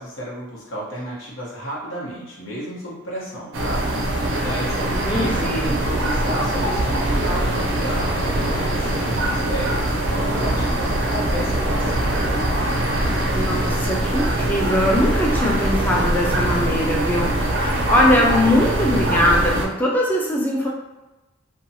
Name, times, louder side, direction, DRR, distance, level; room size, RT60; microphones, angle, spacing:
voice 1, 0.0-12.1, equal, 90° left, -5 dB, 1.0 m, -32 dB
sound 1, 3.5-19.7, right 1 dB, 75° right, 0.5 m, -23 dB
Thunder / Rain, 3.7-16.7, equal, 35° left, 0.8 m, -32 dB
voice 2, 5.0-5.8 13.3-20.7, left 1 dB, 10° left, -3 dB, 0.3 m, -21 dB
2.7 x 2.2 x 2.7 m, 1.1 s
head